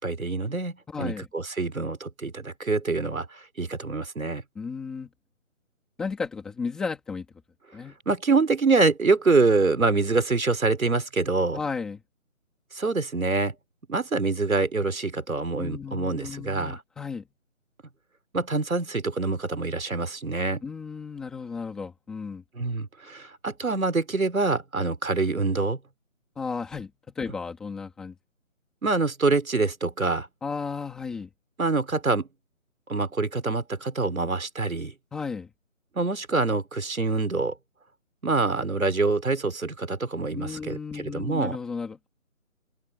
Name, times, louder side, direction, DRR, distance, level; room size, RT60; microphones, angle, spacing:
voice 1, 0.0-4.4 8.1-11.6 12.7-13.5 13.9-16.8 18.3-20.6 22.6-25.8 28.8-30.3 31.6-32.3 32.9-34.9 35.9-37.5 38.2-41.6, right 3 dB, 80° right, 4.6 m, -25 dB
voice 2, 0.9-1.3 4.6-5.1 6.0-7.3 7.7-8.0 11.5-12.0 15.6-17.3 20.6-22.4 26.4-26.9 27.2-28.1 30.4-31.3 35.1-35.5 40.3-42.1, left 5 dB, ahead, 1.9 m, -34 dB
open air
figure-of-eight pair, 175°, 41 cm